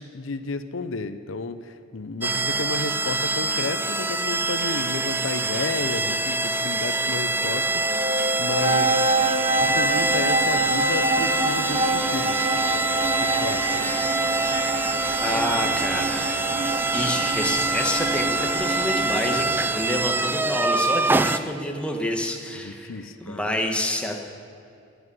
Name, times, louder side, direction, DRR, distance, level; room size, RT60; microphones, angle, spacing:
voice 1, 0.0-7.8 8.4-8.9 9.6-12.4 13.2-13.7 22.6-23.5, left 3 dB, 85° left, 11 dB, 0.7 m, -32 dB
sound 1, 2.2-21.4, right 3 dB, 10° right, 0.4 m, -25 dB
sound 2, 7.4-20.2, right 2 dB, 30° right, 1.0 m, -27 dB
voice 2, 15.2-16.4 16.9-24.2, left 1 dB, 5° left, 2 dB, 1.3 m, -28 dB
10.0 x 9.6 x 9.8 m, 2.5 s
head